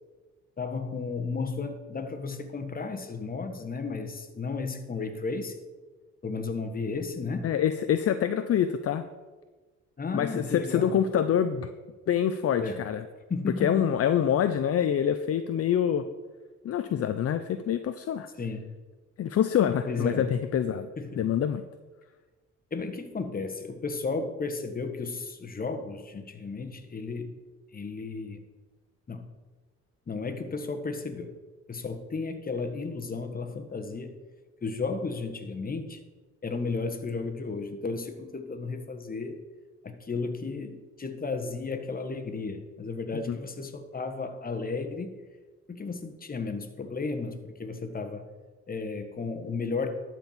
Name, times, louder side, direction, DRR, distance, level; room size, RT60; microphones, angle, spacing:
voice 1, 0.6-5.6 6.2-7.5 10.0-10.9 12.6-12.8 13.3-13.7 18.4-18.6 19.9-20.3 21.0-21.2 22.7-27.4 27.7-28.4 29.1-29.3 30.1-31.3 31.7-34.1 34.6-36.0 36.4-39.4 39.8-45.1 45.8-48.3 48.7-49.9, left 4 dB, 30° left, 7 dB, 1.3 m, -33 dB
voice 2, 7.4-9.0 10.1-11.7 12.1-13.0 13.6-16.1 16.6-18.3 19.2-20.9 21.2-21.6 43.3-43.4, left 9 dB, 50° left, 10 dB, 0.6 m, -26 dB
11.5 x 4.6 x 7.2 m, 1.3 s
cardioid pair, 90°, 30 cm